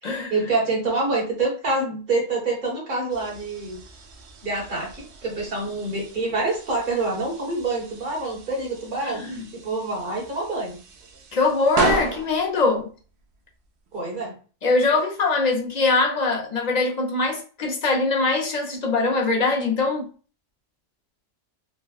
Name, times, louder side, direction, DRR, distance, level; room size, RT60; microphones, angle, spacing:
voice 1, 0.0-3.8 4.4-10.8 13.9-14.3, right 3 dB, 45° right, 1.4 m, -26 dB
sound 1, 3.1-14.0, right 4 dB, 70° right, 0.8 m, -34 dB
voice 2, 9.0-9.4 11.3-12.9 14.6-20.1, left 3 dB, 45° left, 0.7 m, -22 dB
3.5 x 2.1 x 2.4 m
omnidirectional pair, 1.2 m